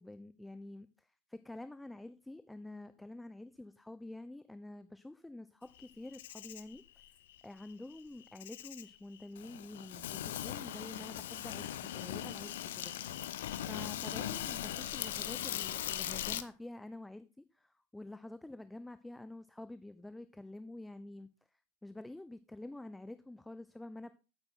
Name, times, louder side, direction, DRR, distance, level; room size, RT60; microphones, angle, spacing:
voice 1, 0.0-6.8 7.4-12.9 13.7-21.3 21.8-24.1, left 2 dB, 5° left, 13 dB, 0.4 m, -48 dB
Insect, 5.8-16.4, left 11 dB, 55° left, 0.6 m, -40 dB
8.7 x 8.7 x 3.8 m, 0.32 s
figure-of-eight pair, 90°, 0 cm